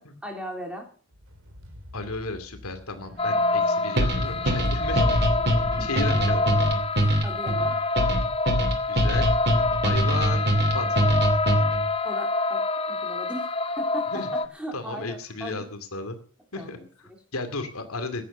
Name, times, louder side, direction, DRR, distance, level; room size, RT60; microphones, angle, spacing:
voice 1, 0.2-0.9 5.8-5.9 7.0-7.7 12.0-13.5 13.8-15.6 16.5-16.9, equal, 5° right, 2 dB, 3.3 m, -38 dB
sound 1, 1.1-6.6, equal, 65° right, 3.1 m, -39 dB
voice 2, 1.9-5.0 5.8-6.5 8.9-9.3 9.8-10.5 10.7-10.9 14.1-14.3 14.7-16.2 16.5-18.2, left 3 dB, 80° left, 8 dB, 2.5 m, -33 dB
sound 2, 3.2-14.4, left 3 dB, 25° left, 0.6 m, -26 dB
sound 3, 4.0-11.9, right 1 dB, 50° right, 2.6 m, -23 dB
15.5 x 10.0 x 6.9 m, 0.43 s
head